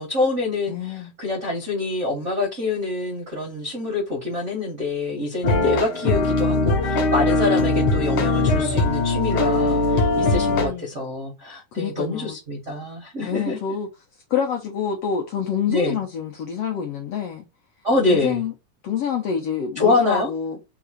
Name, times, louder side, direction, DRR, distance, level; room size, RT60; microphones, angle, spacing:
voice 1, 0.0-13.6 15.7-16.0 17.8-18.4 19.7-20.3, left 3 dB, 85° right, 0.6 m, -25 dB
voice 2, 0.7-1.1 5.4-6.0 10.2-10.9 11.7-12.4 13.2-13.9 14.3-17.4 18.1-18.5 18.8-20.6, left 7 dB, 75° left, 1.4 m, -27 dB
sound 1, 5.4-10.7, left 2 dB, 60° left, 1.4 m, -20 dB
4.7 x 2.4 x 4.7 m
omnidirectional pair, 3.5 m